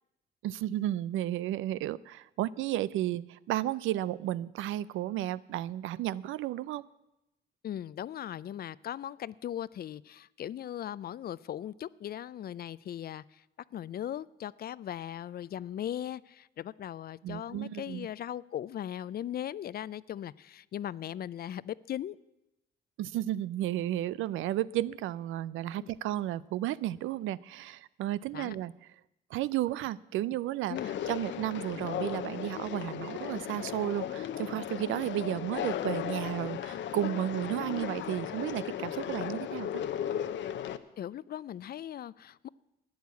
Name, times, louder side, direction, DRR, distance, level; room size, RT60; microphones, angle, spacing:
voice 1, 0.4-6.8 17.2-18.1 23.0-28.7 29.3-39.8, right 13 dB, 85° right, 0.5 m, -33 dB
voice 2, 7.6-13.4 13.7-22.2 25.8-25.9 28.3-28.6 30.7-30.9 41.0-42.5, left 11 dB, 50° left, 0.4 m, -38 dB
Conversation, 30.8-40.8, left 10 dB, 70° left, 0.8 m, -36 dB
13.0 x 9.5 x 8.2 m
cardioid pair, 90°, 20 cm